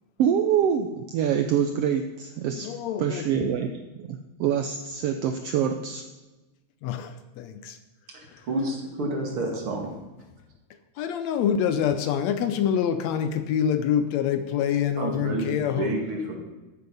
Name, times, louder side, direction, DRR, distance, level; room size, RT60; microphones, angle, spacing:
voice 1, 0.2-2.7 3.0-6.1, right 8 dB, 80° right, 1.4 m, -25 dB
voice 2, 2.6-3.3 6.8-7.8 11.0-16.0, left 8 dB, 75° left, 1.8 m, -26 dB
voice 3, 8.1-9.9 15.0-16.4, right 2 dB, 50° right, 2.7 m, -30 dB
13.5 x 8.3 x 5.4 m
omnidirectional pair, 3.4 m